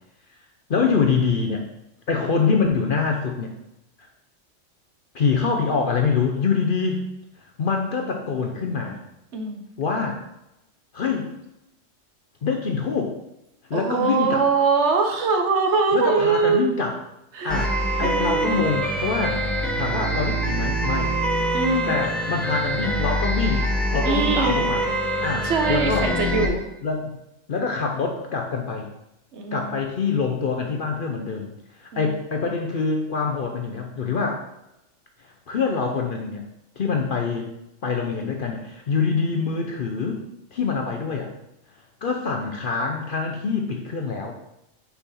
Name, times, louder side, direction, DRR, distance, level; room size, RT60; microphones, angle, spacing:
voice 1, 0.7-1.6 2.1-3.5 5.1-7.0 7.6-9.0 9.8-10.2 10.9-11.3 12.4-13.2 13.7-14.5 15.9-17.0 17.4-19.4 19.8-21.1 21.9-23.7 23.9-24.9 25.2-26.2 26.8-27.1 27.5-28.9 29.5-34.4 35.5-36.4 36.8-37.5 37.8-40.2 40.5-41.3 42.0-44.4, left 5 dB, 55° left, 2 dB, 0.7 m, -25 dB
voice 2, 13.7-16.8 17.3-17.7 18.0-18.7 21.5-22.0 24.0-24.6 25.4-26.6 29.3-29.7 31.9-32.1, right 4 dB, 65° right, 4 dB, 1.0 m, -23 dB
sound 1, 17.5-26.5, right 1 dB, ahead, 0.3 m, -24 dB
5.8 x 4.2 x 4.1 m, 0.88 s
omnidirectional pair, 1.4 m